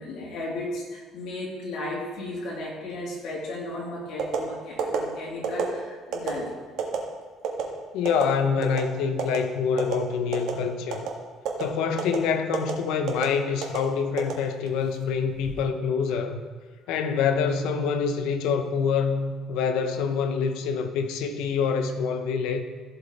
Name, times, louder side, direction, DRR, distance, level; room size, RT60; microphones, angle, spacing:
voice 1, 0.0-6.5, left 2 dB, 60° left, -4 dB, 3.2 m, -35 dB
sound 1, 4.2-4.4 4.8-5.0 5.4-5.7 6.1-6.3 6.8-7.0 7.4-7.6 8.0-8.2 8.6-8.8 9.2-9.4 9.8-9.9 10.3-10.6 10.9-11.1 11.4-11.6 12.0-12.2 12.5-12.7 13.1-13.3 13.6-13.8 14.2-14.8 15.2-15.5, right 8 dB, 70° right, 1.7 m, -27 dB
voice 2, 7.9-11.1 11.6-16.4 16.9-22.6, left 6 dB, 80° left, 8 dB, 0.9 m, -26 dB
15.5 x 5.4 x 4.2 m, 1.4 s
cardioid pair, 150°, 0 cm